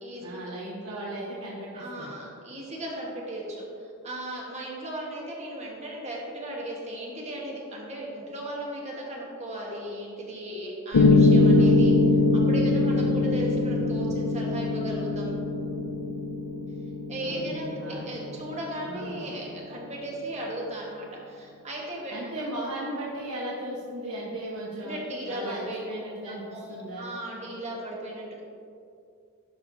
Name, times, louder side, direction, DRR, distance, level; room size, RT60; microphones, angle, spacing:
voice 1, 0.2-2.1 12.6-13.2 17.2-18.3 18.8-19.2 22.1-25.0 25.3-27.1, right 1 dB, 65° right, -7 dB, 1.0 m, -36 dB
voice 2, 1.7-3.6 4.0-11.9 12.3-15.4 17.1-22.1 24.8-25.9 26.2-28.4, right 1 dB, 30° right, -3 dB, 1.2 m, -36 dB
Piano, 10.9-19.0, left 3 dB, 85° left, 0.5 m, -22 dB
11.0 x 4.5 x 2.6 m, 2.4 s
head